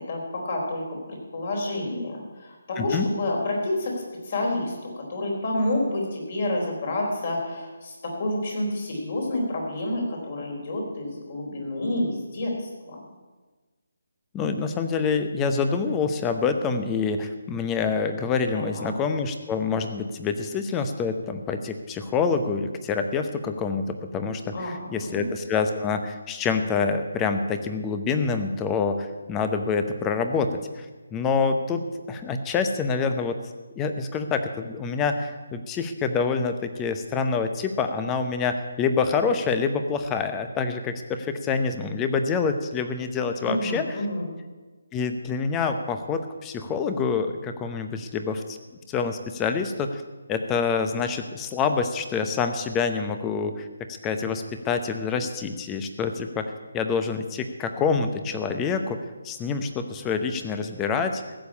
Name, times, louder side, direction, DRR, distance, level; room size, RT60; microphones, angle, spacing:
voice 1, 0.1-13.0 18.5-18.9 24.5-25.3 43.4-44.3, left 1 dB, 45° left, -1 dB, 4.3 m, -29 dB
voice 2, 2.8-3.1 14.3-33.4 33.8-43.9 44.9-48.6 48.9-50.0 50.3-53.7 54.0-59.0 59.2-61.4, left 5 dB, 15° left, 7 dB, 0.8 m, -26 dB
15.0 x 6.9 x 8.5 m, 1.3 s
hypercardioid pair, 165°, 0 cm